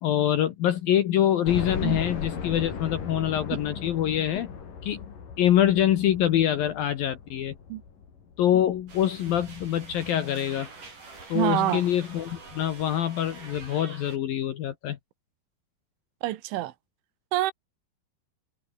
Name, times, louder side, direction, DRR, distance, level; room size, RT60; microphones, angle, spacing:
voice 1, 0.0-4.5 4.8-7.6 8.4-10.7 11.3-15.0, left 11 dB, 65° left, 2.4 m, -25 dB
sound 1, 1.5-10.4 10.8-10.9 11.3-11.4 12.6-12.7 13.0-13.1, left 6 dB, 45° left, 5.2 m, -37 dB
sound 2, 8.9-14.2, right 4 dB, 40° right, 8.7 m, -46 dB
voice 2, 11.3-11.8 16.2-16.7 17.3-17.5, right 16 dB, 80° right, 3.6 m, -26 dB
omnidirectional pair, 5.6 m